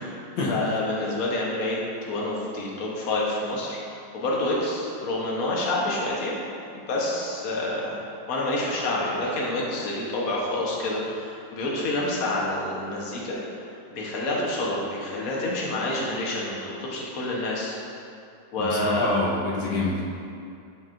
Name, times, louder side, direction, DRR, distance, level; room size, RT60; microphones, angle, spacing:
voice 1, 0.5-6.4 6.7-7.9 8.3-17.8 18.5-19.1, left 2 dB, 55° left, -4 dB, 1.4 m, -28 dB
voice 2, 18.6-20.0, left 3 dB, 75° left, -4 dB, 1.5 m, -27 dB
11.0 x 4.6 x 2.6 m, 2.5 s
omnidirectional pair, 2.0 m